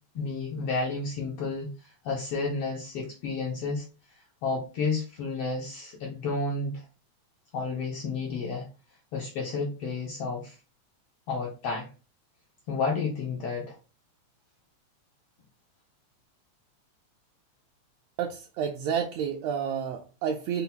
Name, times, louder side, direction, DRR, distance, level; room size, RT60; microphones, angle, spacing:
voice 1, 0.1-3.9 4.4-6.8 7.5-8.7 9.1-10.6 11.3-11.9 12.7-13.8, left 4 dB, 70° left, -2 dB, 1.4 m, -31 dB
voice 2, 18.2-20.6, right 7 dB, 80° right, 1 dB, 1.7 m, -30 dB
5.6 x 2.0 x 3.8 m, 0.33 s
omnidirectional pair, 3.4 m